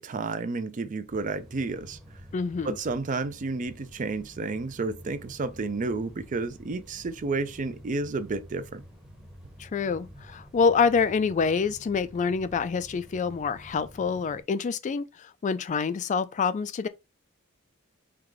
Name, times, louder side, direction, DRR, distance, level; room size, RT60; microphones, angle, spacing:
voice 1, 0.0-2.0 2.6-8.8, right 3 dB, 40° right, 0.4 m, -31 dB
sound 1, 1.1-14.4, equal, 5° right, 0.8 m, -49 dB
voice 2, 2.3-2.8 9.6-16.9, left 5 dB, 35° left, 0.3 m, -26 dB
4.7 x 2.2 x 3.8 m
head